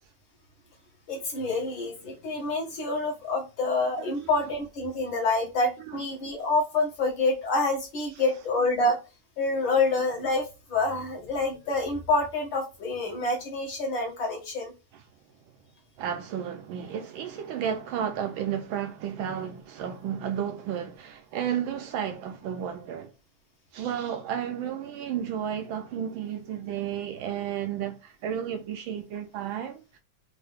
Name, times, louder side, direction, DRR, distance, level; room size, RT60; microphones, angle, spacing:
voice 1, 1.1-9.0 9.4-14.7, left 2 dB, 60° left, 2.0 m, -27 dB
voice 2, 4.0-4.5 5.9-6.0 14.9-15.0 16.0-23.1 23.7-30.0, right 9 dB, 75° right, 1.2 m, -32 dB
4.5 x 2.6 x 3.4 m
omnidirectional pair, 2.4 m